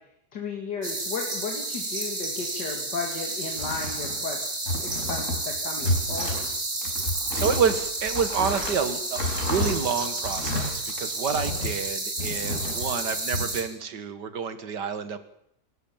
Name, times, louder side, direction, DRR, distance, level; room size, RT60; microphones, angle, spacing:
voice 1, 0.3-4.4 4.8-6.5, left 4 dB, 80° left, 1 dB, 3.0 m, -34 dB
sound 1, 0.8-13.6, right 2 dB, 45° right, 4.0 m, -31 dB
sound 2, 3.5-4.3 4.7-5.4 5.8-6.5 6.8-11.8 12.2-13.4, left 1 dB, 45° left, 5.3 m, -31 dB
voice 2, 7.3-15.2, right 6 dB, 85° right, 10 dB, 2.2 m, -28 dB
28.0 x 13.5 x 7.3 m, 0.70 s
omnidirectional pair, 1.8 m